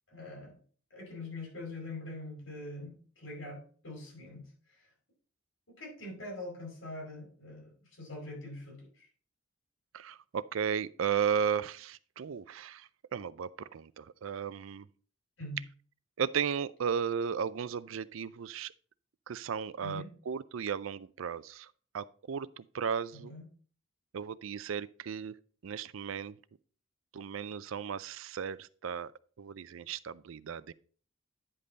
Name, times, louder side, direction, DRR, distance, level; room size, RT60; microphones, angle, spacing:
voice 1, 0.1-0.5 0.9-4.4 5.8-9.1 15.4-15.6 19.8-20.1 23.1-23.4, left 2 dB, 75° left, 4.9 m, -43 dB
voice 2, 9.9-14.9 16.2-18.7 19.3-23.3 24.1-25.3 25.6-26.4 27.1-29.1 29.4-30.7, right 7 dB, 80° right, 0.4 m, -35 dB
9.9 x 5.4 x 3.9 m
head